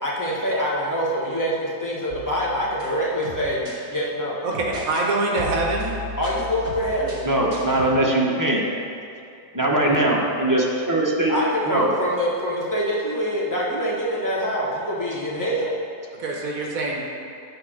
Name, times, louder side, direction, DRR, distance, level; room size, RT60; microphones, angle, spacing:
voice 1, 0.0-3.6 3.9-4.4 6.2-7.2 11.3-15.8, equal, 15° left, -6 dB, 1.3 m, -25 dB
sound 1, 2.1-3.8 4.5-5.1 5.4-7.9, equal, 45° right, 1.5 m, -36 dB
voice 2, 4.4-6.0 16.1-17.0, right 2 dB, 70° right, -1 dB, 1.4 m, -24 dB
voice 3, 7.2-8.6 9.5-11.3 11.7-11.9, right 1 dB, 20° right, -3 dB, 0.6 m, -21 dB
8.4 x 4.3 x 6.4 m, 2.4 s
omnidirectional pair, 1.6 m